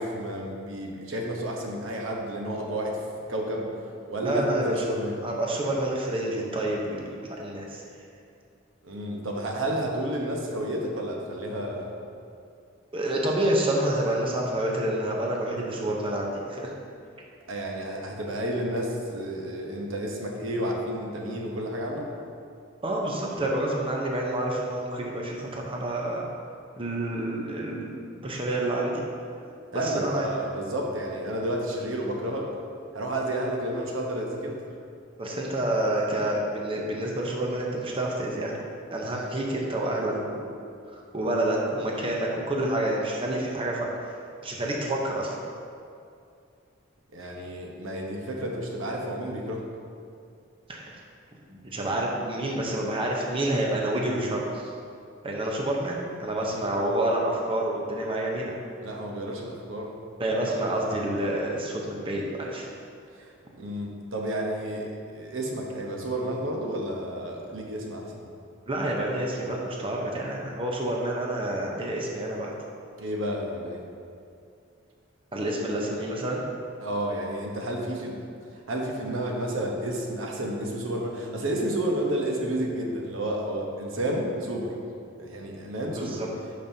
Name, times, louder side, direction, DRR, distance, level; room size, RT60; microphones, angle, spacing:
voice 1, 0.0-3.0 3.3-3.7 4.1-5.2 8.8-12.0 17.5-22.1 29.7-32.5 32.9-34.6 47.1-49.6 56.5-56.6 58.8-59.9 63.2-63.3 63.6-68.3 73.0-73.8 76.8-78.2 78.7-84.7 85.2-86.2, right 1 dB, 90° right, 0 dB, 1.0 m, -31 dB
voice 2, 4.2-4.8 5.2-7.0 7.4-7.8 12.9-16.7 22.8-26.3 26.8-29.0 29.7-30.3 35.2-38.5 38.9-40.5 40.9-43.9 44.4-45.4 50.7-51.0 51.5-54.7 55.2-58.5 60.2-62.7 68.7-72.5 75.3-76.4 86.0-86.3, right 1 dB, 30° right, -2 dB, 0.8 m, -28 dB
11.0 x 5.3 x 2.8 m, 2.4 s
head